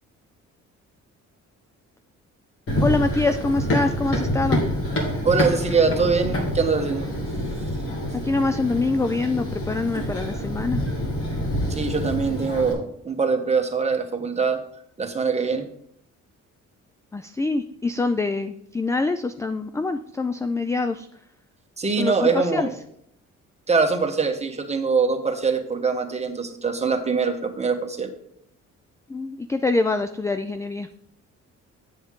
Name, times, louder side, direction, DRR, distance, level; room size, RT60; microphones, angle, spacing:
Run, 2.7-12.7, equal, 45° left, 2.5 m, -27 dB
voice 1, 2.8-4.6 8.2-10.8 17.1-21.1 22.0-22.7 29.1-30.9, left 3 dB, 10° left, 9 dB, 0.3 m, -25 dB
voice 2, 5.2-7.1 11.7-14.6 15.0-15.7 21.8-22.7 23.7-28.1, right 4 dB, 20° right, 4 dB, 1.2 m, -23 dB
7.8 x 7.5 x 3.7 m, 0.71 s
cardioid pair, 90°, 30 cm